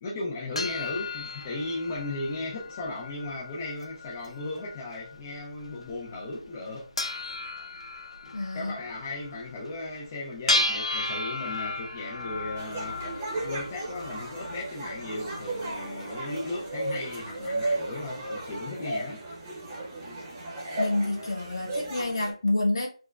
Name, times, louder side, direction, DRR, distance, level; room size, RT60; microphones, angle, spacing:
voice 1, 0.0-6.9 8.2-13.0 13.4-19.2, left 2 dB, 20° left, 0.4 m, -36 dB
sound 1, 0.6-18.5, left 2 dB, 90° left, 0.6 m, -36 dB
voice 2, 8.3-8.7 20.8-22.9, left 2 dB, 50° left, 1.1 m, -28 dB
sound 2, 12.6-22.3, right 2 dB, 20° right, 0.8 m, -35 dB
4.3 x 2.1 x 2.2 m
figure-of-eight pair, 170°, 3 cm